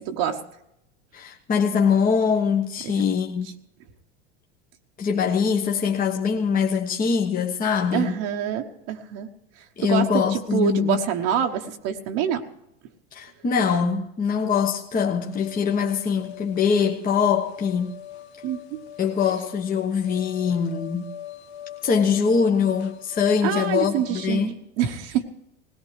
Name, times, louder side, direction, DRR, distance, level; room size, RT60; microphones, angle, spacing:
voice 1, 0.1-0.4 7.9-9.3 9.8-12.5 18.4-18.8 23.4-25.2, right 9 dB, 60° right, 1.2 m, -26 dB
voice 2, 1.1-3.5 5.0-8.2 9.8-11.0 13.1-17.9 19.0-21.1 21.8-24.6, left 6 dB, 25° left, 1.2 m, -23 dB
sound 1, 15.2-24.4, left 10 dB, 75° left, 1.0 m, -42 dB
20.0 x 17.5 x 3.3 m
hypercardioid pair, 90°, 33 cm